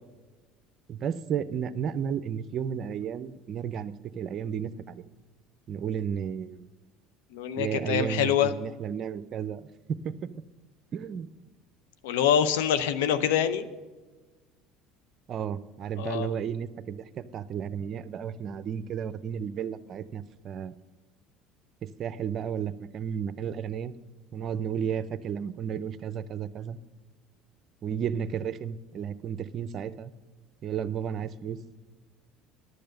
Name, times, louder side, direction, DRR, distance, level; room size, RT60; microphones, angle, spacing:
voice 1, 0.9-5.0 5.7-6.7 7.6-10.1 10.9-11.3 15.3-20.7 21.8-23.9 24.3-26.8 27.8-30.1 30.6-31.6, right 8 dB, 50° right, 14 dB, 0.6 m, -33 dB
voice 2, 7.3-8.5 12.0-13.7 16.0-16.3, left 9 dB, 85° left, 12 dB, 0.7 m, -25 dB
11.0 x 6.8 x 6.4 m, 1.3 s
supercardioid pair, 90°, 0 cm